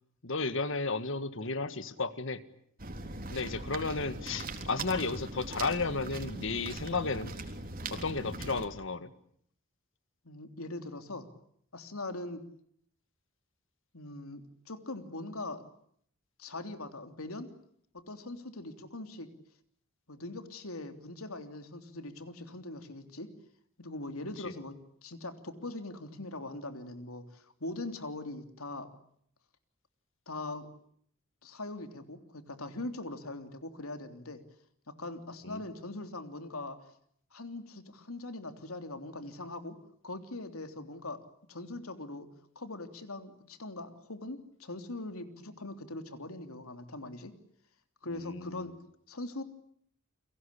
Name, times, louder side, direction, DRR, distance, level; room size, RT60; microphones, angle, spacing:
voice 1, 0.2-2.4 3.3-7.3 7.9-9.1 35.4-35.6 48.1-48.7, left 3 dB, 60° left, 12 dB, 1.8 m, -33 dB
sound 1, 2.8-8.7, right 2 dB, 45° right, 3.8 m, -40 dB
voice 2, 10.2-11.3 11.7-12.4 13.9-14.4 14.7-15.6 16.4-17.5 17.9-19.3 20.1-23.3 23.8-24.7 25.0-28.9 30.3-30.7 31.4-34.4 35.0-36.8 37.3-39.8 40.0-41.2 41.5-42.3 42.5-47.3 48.0-48.7 49.1-49.4, left 2 dB, 85° left, 7 dB, 3.3 m, -41 dB
30.0 x 23.5 x 8.4 m, 0.67 s
head